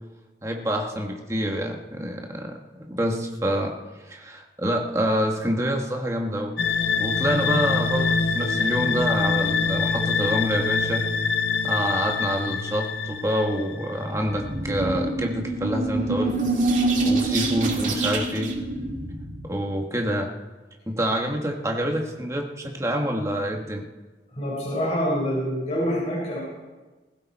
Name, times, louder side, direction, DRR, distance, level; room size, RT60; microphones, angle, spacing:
voice 1, 0.4-3.7 4.1-6.5 7.0-11.1 11.6-16.4 17.0-18.5 19.4-20.3 20.9-23.8, equal, 15° right, 2 dB, 1.7 m, -27 dB
sound 1, 6.6-14.1, left 5 dB, 75° left, 1.1 m, -25 dB
sound 2, 14.1-19.6, right 2 dB, 45° right, 2.2 m, -26 dB
voice 2, 24.3-26.4, equal, 40° left, -5 dB, 4.6 m, -26 dB
20.5 x 16.0 x 4.4 m, 1.2 s
head